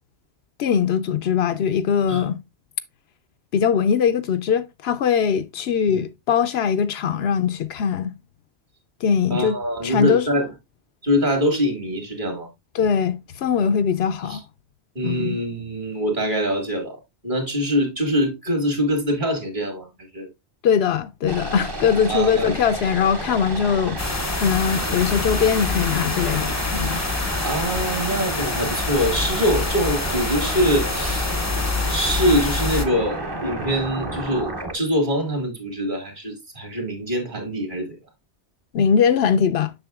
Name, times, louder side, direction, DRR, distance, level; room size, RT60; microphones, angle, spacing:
voice 1, 0.6-2.4 3.5-8.1 9.0-9.6 9.8-10.4 12.7-14.4 15.0-15.4 20.6-24.1 24.4-27.0 38.7-39.7, left 7 dB, 75° left, 0.8 m, -21 dB
voice 2, 9.3-10.5 11.0-12.5 14.3-14.4 15.0-17.0 17.2-20.3 22.1-22.6 27.4-31.4 31.9-38.0, equal, 45° right, 2.2 m, -24 dB
sound 1, 21.3-34.7, right 1 dB, 25° right, 0.8 m, -31 dB
sound 2, 24.0-32.9, left 3 dB, 20° left, 0.6 m, -26 dB
7.0 x 6.5 x 2.4 m
omnidirectional pair, 1.1 m